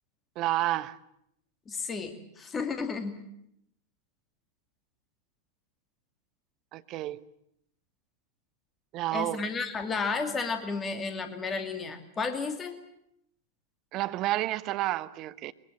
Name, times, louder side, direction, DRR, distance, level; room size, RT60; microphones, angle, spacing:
voice 1, 0.4-1.0 6.7-7.2 8.9-9.5 13.9-15.5, right 16 dB, 40° right, 1.0 m, -30 dB
voice 2, 1.7-3.2 9.1-12.8, left 4 dB, 20° left, 2.5 m, -32 dB
23.0 x 22.5 x 8.9 m
figure-of-eight pair, 90°, 0 cm